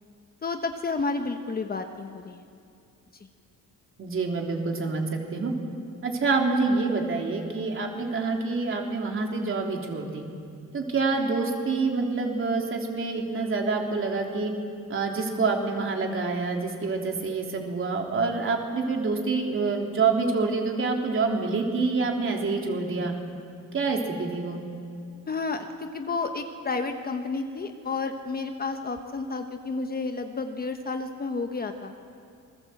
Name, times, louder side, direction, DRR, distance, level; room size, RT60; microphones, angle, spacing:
voice 1, 0.4-2.4 3.2-3.3 25.3-31.9, left 4 dB, 30° left, 6 dB, 1.2 m, -31 dB
voice 2, 4.0-5.5 6.0-10.2 10.7-14.5 14.9-23.1 23.7-24.6, right 4 dB, 40° right, 1 dB, 3.4 m, -27 dB
27.5 x 21.0 x 7.9 m, 2.4 s
cardioid pair, 160°, 33 cm